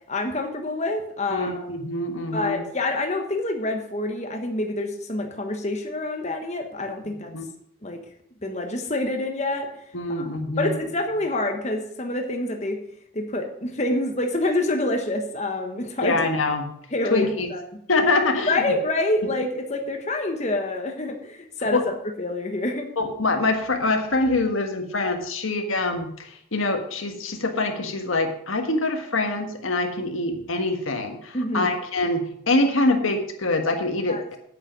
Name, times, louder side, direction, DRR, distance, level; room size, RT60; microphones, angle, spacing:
voice 1, 0.1-1.5 2.3-7.3 7.8-8.0 8.4-9.7 10.1-10.3 10.6-12.8 13.1-16.2 16.9-17.6 18.5-22.9 31.3-31.7 34.1-34.2, left 2 dB, 35° left, 3 dB, 1.2 m, -27 dB
voice 2, 1.3-2.6 7.3-7.4 9.9-10.8 16.0-16.7 17.1-17.5 17.9-18.5 21.7-21.8 23.0-34.2, left 2 dB, 85° left, 5 dB, 1.6 m, -24 dB
8.7 x 8.4 x 6.3 m, 0.70 s
head